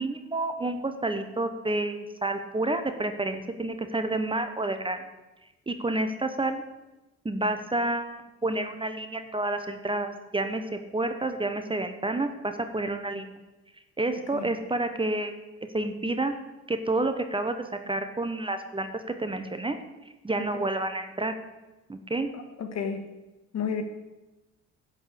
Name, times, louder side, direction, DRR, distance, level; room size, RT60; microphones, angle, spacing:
voice 1, 0.0-5.0 5.7-6.6 7.2-13.3 14.0-15.4 15.7-16.3 16.7-19.8 20.2-21.3 21.9-22.3, right 2 dB, 15° right, 8 dB, 1.0 m, -29 dB
voice 2, 22.6-23.1 23.5-23.8, left 6 dB, 60° left, 6 dB, 1.6 m, -31 dB
11.5 x 5.3 x 8.3 m, 1.1 s
cardioid pair, 90°, 30 cm